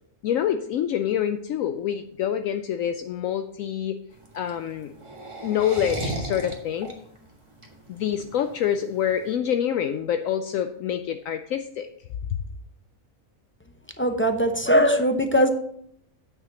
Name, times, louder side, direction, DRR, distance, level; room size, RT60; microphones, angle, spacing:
voice 1, 0.2-4.0 4.3-4.9 5.4-6.9 7.9-11.9, left 9 dB, 70° left, 8 dB, 0.9 m, -26 dB
sound 1, 4.1-9.3, right 1 dB, 20° right, 1.6 m, -35 dB
voice 2, 14.0-15.5, equal, 15° left, 5 dB, 0.4 m, -20 dB
9.2 x 5.0 x 7.1 m, 0.71 s
omnidirectional pair, 1.5 m